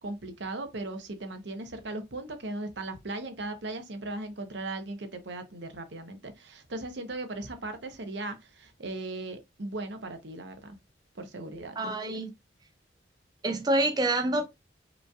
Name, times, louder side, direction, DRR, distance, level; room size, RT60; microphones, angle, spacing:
voice 1, 0.0-10.8 11.1-11.8, right 2 dB, 65° right, 0.9 m, -38 dB
voice 2, 11.8-12.3 13.4-14.5, right 2 dB, 20° right, 0.5 m, -27 dB
5.1 x 3.1 x 2.3 m
head